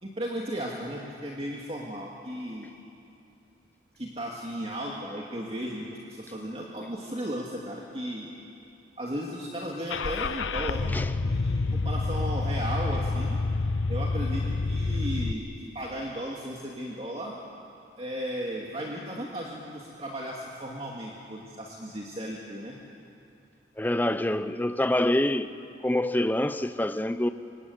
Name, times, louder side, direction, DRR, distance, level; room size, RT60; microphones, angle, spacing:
voice 1, 0.0-2.7 4.0-8.3 9.0-11.0 11.2-13.4 13.9-17.3 18.0-22.8, equal, 30° right, 2.3 m, -35 dB
Car / Engine starting, 9.9-15.3, left 3 dB, 90° left, 0.7 m, -28 dB
voice 2, 23.8-25.6 25.8-27.3, left 1 dB, 10° left, 0.7 m, -26 dB
26.5 x 25.5 x 8.2 m
head